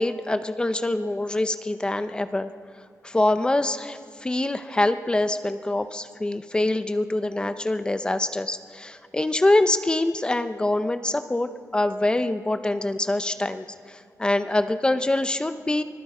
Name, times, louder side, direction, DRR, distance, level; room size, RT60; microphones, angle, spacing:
voice 1, 0.0-2.5 3.0-15.8, left 2 dB, 15° left, 10 dB, 0.6 m, -25 dB
25.0 x 21.5 x 4.9 m, 2.6 s
wide cardioid pair, 155°, 6 cm